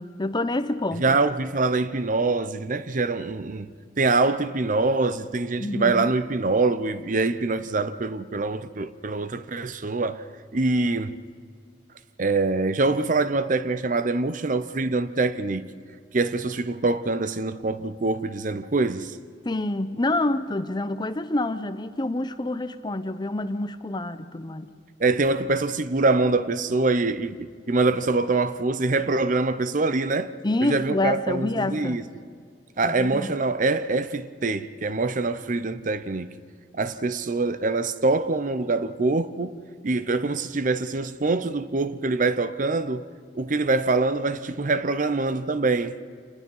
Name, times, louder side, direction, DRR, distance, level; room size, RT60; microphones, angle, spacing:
voice 1, 0.0-1.2 5.6-6.1 19.4-24.7 30.4-32.0 32.8-33.3, left 2 dB, 25° left, 0.7 m, -27 dB
voice 2, 1.0-3.7 4.0-10.3 10.5-11.1 12.2-15.7 16.1-19.2 25.0-30.3 30.6-32.0 32.8-36.4 36.7-43.1 43.3-46.0, right 3 dB, 45° right, 0.7 m, -24 dB
27.5 x 20.0 x 5.6 m
head